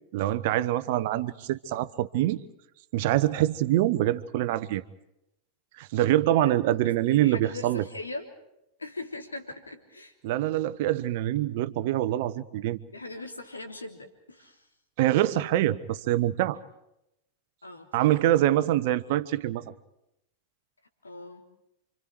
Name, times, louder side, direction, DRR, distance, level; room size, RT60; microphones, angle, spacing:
voice 1, 0.1-2.4 2.9-4.8 5.8-7.8 10.2-12.8 15.0-16.6 17.9-19.6, right 14 dB, 50° right, 14 dB, 1.2 m, -25 dB
voice 2, 6.8-8.3 8.8-10.1 12.9-14.7 17.6-18.1 18.4-18.7 21.0-21.5, left 2 dB, 80° left, 5 dB, 3.4 m, -41 dB
29.5 x 26.0 x 4.7 m, 0.83 s
figure-of-eight pair, 90°, 0 cm